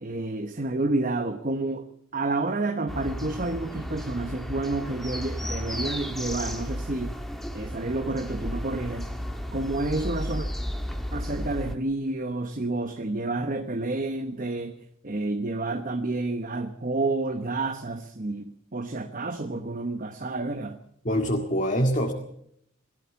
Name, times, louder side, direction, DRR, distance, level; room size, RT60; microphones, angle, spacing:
voice 1, 0.0-1.9 2.1-7.1 7.5-9.1 9.5-10.5 11.1-14.7 15.0-20.8, right 2 dB, 35° right, 8 dB, 1.0 m, -29 dB
sound 1, 2.9-11.7, equal, ahead, 1.6 m, -33 dB
voice 2, 21.0-22.1, equal, 35° left, 2 dB, 2.0 m, -24 dB
20.5 x 15.5 x 8.3 m, 0.71 s
head